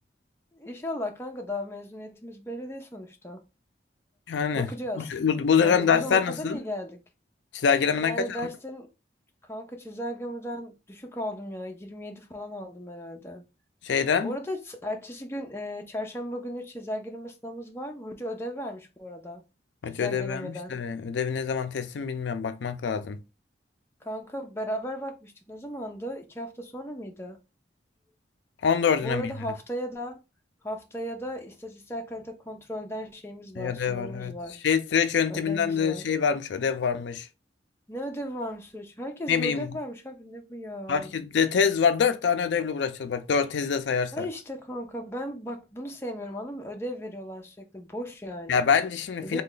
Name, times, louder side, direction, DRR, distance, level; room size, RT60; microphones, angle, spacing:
voice 1, 0.5-3.4 4.5-5.2 5.6-7.0 8.0-8.9 9.5-13.4 14.2-19.4 19.9-20.7 24.0-27.4 29.0-30.2 30.6-34.6 35.3-36.0 37.9-41.1 44.1-48.6 49.2-49.4, equal, 15° left, 0.6 m, -36 dB
voice 2, 4.3-4.7 5.0-6.6 7.5-8.2 13.8-14.3 19.8-23.2 28.6-29.2 33.6-34.3 34.6-37.3 39.3-39.7 40.9-44.3 48.5-49.4, left 6 dB, 75° left, 0.4 m, -25 dB
3.2 x 2.2 x 3.8 m
head